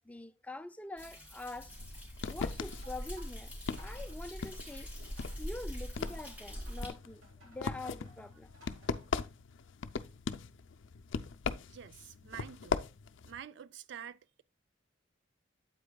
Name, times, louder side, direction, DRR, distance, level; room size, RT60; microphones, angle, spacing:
voice 1, 0.0-1.8 2.3-4.9 5.4-8.5, left 2 dB, 5° left, 0.4 m, -45 dB
Thunder, 1.0-6.9, equal, 10° right, 2.7 m, -43 dB
sound 1, 1.7-13.4, left 5 dB, 70° left, 0.5 m, -40 dB
sound 2, 2.8-9.2, right 1 dB, 90° right, 2.0 m, -61 dB
voice 2, 11.7-12.9 13.2-14.4, right 9 dB, 60° right, 0.4 m, -48 dB
8.4 x 8.1 x 2.2 m
head